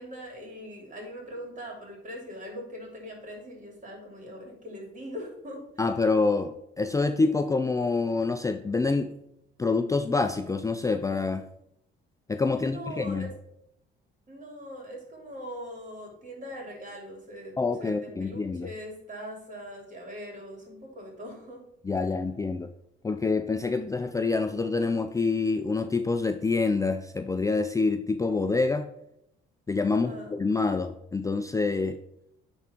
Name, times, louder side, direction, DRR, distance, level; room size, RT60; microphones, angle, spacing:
voice 1, 0.0-5.6 12.5-13.3 14.3-21.6 29.9-30.4, equal, 40° right, 0 dB, 3.0 m, -41 dB
voice 2, 5.8-9.1 9.6-11.4 12.3-13.3 17.6-18.7 21.8-22.7 23.0-28.9 29.7-32.0, left 3 dB, 15° left, 8 dB, 0.4 m, -26 dB
9.6 x 3.6 x 4.5 m, 0.79 s
cardioid pair, 90°, 20 cm